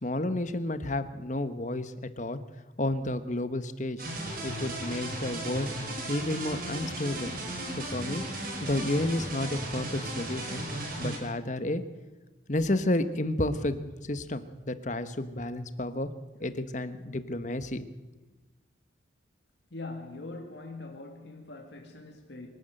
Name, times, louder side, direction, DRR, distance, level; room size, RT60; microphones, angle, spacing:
voice 1, 0.0-2.4 2.8-4.0 4.4-5.7 6.1-7.3 7.8-8.2 8.6-10.7 11.0-11.8 12.5-13.8 14.1-16.1 16.4-17.9, left 1 dB, 40° left, 11 dB, 1.2 m, -31 dB
sound 1, 4.0-11.2, right 1 dB, 50° right, 5.6 m, -36 dB
voice 2, 19.7-22.5, left 2 dB, 65° left, 2 dB, 2.2 m, -42 dB
24.5 x 12.0 x 9.0 m, 1.1 s
head